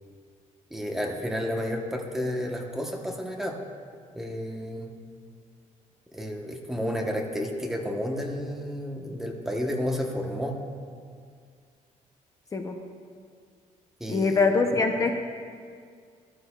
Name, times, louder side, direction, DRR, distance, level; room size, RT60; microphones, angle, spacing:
voice 1, 0.7-3.6 4.1-4.9 6.1-10.6 14.0-14.5, equal, 5° right, 0 dB, 0.9 m, -31 dB
voice 2, 14.1-15.3, left 4 dB, 25° left, 4 dB, 0.5 m, -24 dB
14.0 x 12.5 x 2.3 m, 2.1 s
cardioid pair, 165°, 14 cm